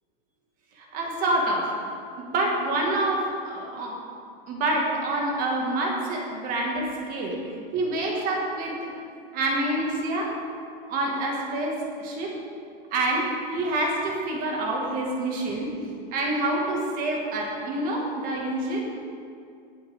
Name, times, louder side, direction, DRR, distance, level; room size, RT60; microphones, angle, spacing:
voice 1, 0.8-1.7 2.2-4.0 4.5-8.8 9.3-10.3 10.9-12.3 12.9-15.7 16.1-18.8, right 2 dB, 30° right, -1 dB, 1.8 m, -27 dB
19.0 x 7.8 x 3.6 m, 2.4 s
supercardioid pair, 160°, 30 cm